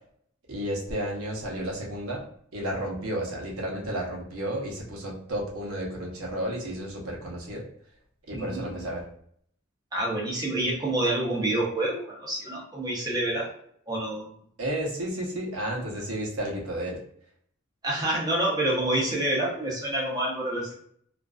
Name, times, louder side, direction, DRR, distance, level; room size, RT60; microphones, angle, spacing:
voice 1, 0.5-2.2 2.5-7.6 8.3-9.0 14.6-17.0, right 1 dB, 90° right, -1 dB, 0.7 m, -32 dB
voice 2, 8.3-8.9 9.9-13.5 13.9-14.3 17.8-20.8, right 1 dB, 20° right, -4 dB, 0.6 m, -28 dB
2.4 x 2.2 x 2.3 m, 0.65 s
head